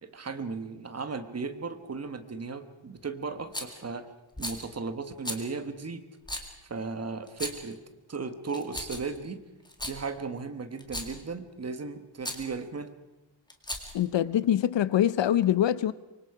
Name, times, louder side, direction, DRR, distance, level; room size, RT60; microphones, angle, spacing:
voice 1, 0.0-4.1 4.4-6.0 6.6-7.8 8.1-9.4 9.8-12.9, right 4 dB, 30° right, 1.3 m, -36 dB
Rattle, 3.5-3.8 4.3-4.6 5.2-5.4 6.2-6.5 7.3-7.7 8.5-9.2 9.6-10.0 10.8-11.2 12.2-12.5 13.5-14.0, left 1 dB, 10° left, 2.1 m, -36 dB
voice 2, 13.9-15.9, left 11 dB, 60° left, 0.7 m, -24 dB
25.0 x 24.0 x 4.9 m
wide cardioid pair, 170°, 49 cm